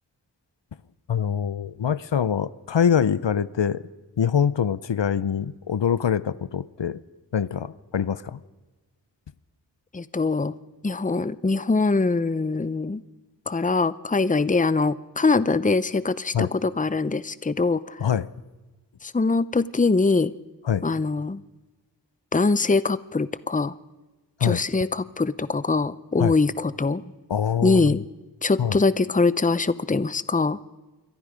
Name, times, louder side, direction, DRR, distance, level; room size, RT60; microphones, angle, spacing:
voice 1, 1.1-3.8 4.2-7.0 7.3-8.4 16.3-16.5 18.0-18.3 20.6-20.8 24.4-24.6 26.2-26.3 27.3-27.9 28.6-28.8, left 8 dB, 80° left, 17 dB, 0.7 m, -24 dB
voice 2, 9.9-10.5 10.8-13.0 13.5-18.0 19.0-20.3 20.8-21.4 22.3-23.7 24.4-27.1 27.6-28.0 28.4-30.6, left 3 dB, 20° left, 16 dB, 0.6 m, -23 dB
27.5 x 23.0 x 5.1 m, 1.2 s
wide cardioid pair, 45°, 43 cm